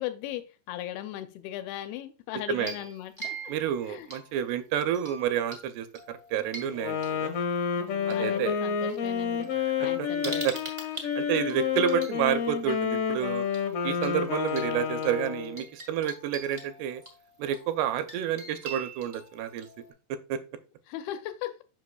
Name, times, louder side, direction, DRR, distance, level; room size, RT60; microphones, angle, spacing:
voice 1, 0.0-3.3 3.9-4.1 7.8-9.5 9.8-10.5 20.9-21.5, left 13 dB, 80° left, 9 dB, 2.4 m, -37 dB
creepy music box, 2.6-4.5 4.9-5.6 5.9-8.1 9.0-9.1 9.4-12.2 13.5-13.7 14.0-14.1 14.5-19.9, right 3 dB, 35° right, 1.0 m, -43 dB
voice 2, 3.5-7.3 8.1-8.6 9.8-10.5 11.2-13.5 13.8-17.0 17.4-19.7 20.3-20.4, right 10 dB, 85° right, 10 dB, 2.7 m, -30 dB
Wind instrument woodwind instrument, 6.7-15.7, left 7 dB, 65° left, 2.1 m, -29 dB
7.4 x 5.9 x 2.3 m, 0.33 s
omnidirectional pair, 4.6 m